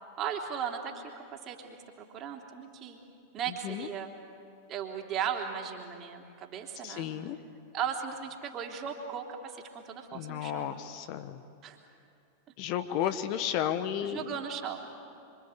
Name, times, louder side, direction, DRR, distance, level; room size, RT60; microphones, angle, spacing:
voice 1, 0.2-3.0 3.3-4.1 4.7-7.1 7.7-10.7 11.6-11.8 14.0-14.9, right 8 dB, 30° right, 2 dB, 3.4 m, -37 dB
voice 2, 3.5-3.9 6.8-7.4 10.1-11.4 12.6-14.4, left 10 dB, 45° left, 9 dB, 1.3 m, -33 dB
26.5 x 25.5 x 8.2 m, 2.6 s
figure-of-eight pair, 90°, 0 cm